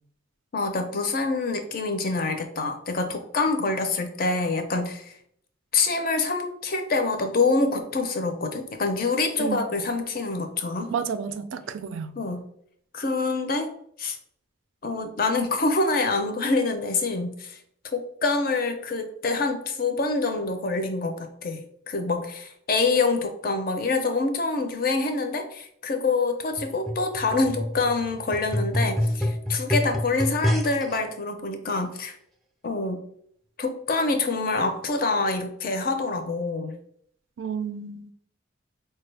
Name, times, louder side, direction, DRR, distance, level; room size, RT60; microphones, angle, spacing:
voice 1, 0.5-5.1 5.7-10.9 12.2-12.5 12.9-13.7 14.0-14.2 14.8-17.6 17.9-21.6 21.9-32.2 32.6-33.0 33.6-36.7, left 3 dB, 50° left, 7 dB, 0.5 m, -26 dB
voice 2, 9.4-9.8 10.9-12.2 37.4-38.1, right 6 dB, 80° right, 11 dB, 0.4 m, -31 dB
sound 1, 26.6-31.0 31.8-31.9, left 1 dB, ahead, 0.4 m, -27 dB
4.5 x 2.2 x 3.2 m, 0.67 s
head